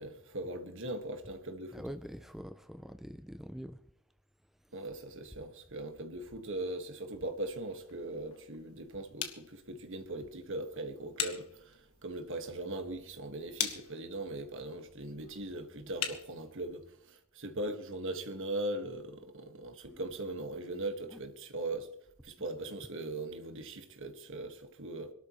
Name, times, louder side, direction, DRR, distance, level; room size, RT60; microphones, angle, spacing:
voice 1, 0.0-1.8 4.7-21.9 22.2-25.1, right 2 dB, 60° right, 1.8 m, -40 dB
voice 2, 1.7-3.8 15.8-15.9 19.9-20.0, equal, ahead, 0.4 m, -45 dB
sound 1, 7.2-16.9, left 9 dB, 80° left, 1.7 m, -43 dB
25.5 x 12.5 x 3.1 m
head